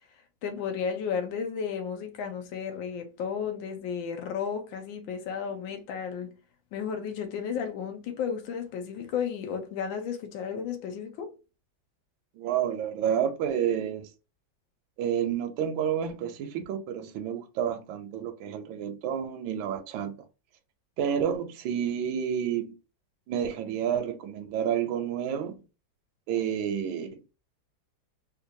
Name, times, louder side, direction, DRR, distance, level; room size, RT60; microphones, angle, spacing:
voice 1, 0.4-6.3 6.7-11.3, left 7 dB, 75° left, 1.5 m, -33 dB
voice 2, 12.3-14.1 15.0-20.2 21.0-22.7 23.3-25.6 26.3-27.2, right 9 dB, 80° right, 1.3 m, -30 dB
4.5 x 2.5 x 2.6 m
omnidirectional pair, 2.1 m